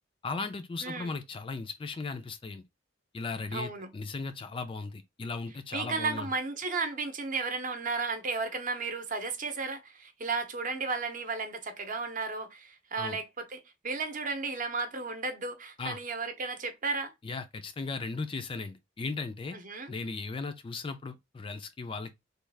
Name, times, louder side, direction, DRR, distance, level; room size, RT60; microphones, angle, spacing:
voice 1, 0.2-2.6 3.1-6.3 13.0-13.2 15.8-16.0 17.2-19.6 19.9-22.1, left 4 dB, 30° left, 0.3 m, -37 dB
voice 2, 0.8-1.1 3.5-3.9 5.7-17.1 19.5-19.9, right 4 dB, 45° right, 0.7 m, -34 dB
3.2 x 2.3 x 3.3 m
head